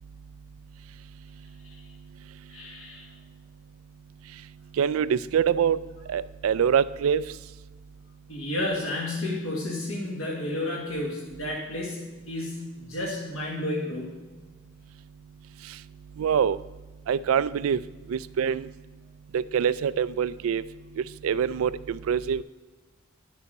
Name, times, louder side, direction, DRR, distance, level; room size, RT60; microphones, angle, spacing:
voice 1, 2.5-3.1 8.3-14.2, left 1 dB, 75° left, -4 dB, 1.7 m, -31 dB
voice 2, 4.8-5.8 6.1-7.2 16.2-16.6 17.1-17.8 18.1-18.6 19.3-20.6 21.2-22.4, right 7 dB, 85° right, 18 dB, 0.3 m, -24 dB
11.0 x 6.8 x 4.1 m, 1.3 s
head